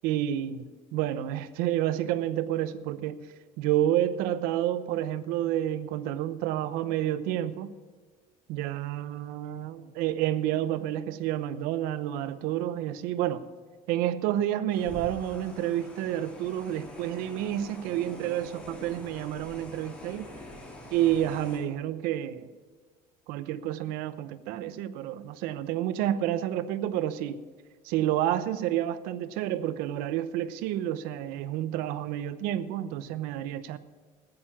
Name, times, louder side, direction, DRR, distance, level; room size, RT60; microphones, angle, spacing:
voice 1, 0.0-0.7 0.9-3.3 3.6-7.7 8.5-13.5 13.9-20.3 20.9-22.5 23.3-27.4 27.8-33.8, right 12 dB, 75° right, 0.8 m, -29 dB
sound 1, 14.7-21.6, left 1 dB, 5° left, 3.5 m, -45 dB
14.5 x 9.0 x 7.2 m
cardioid pair, 140°, 15 cm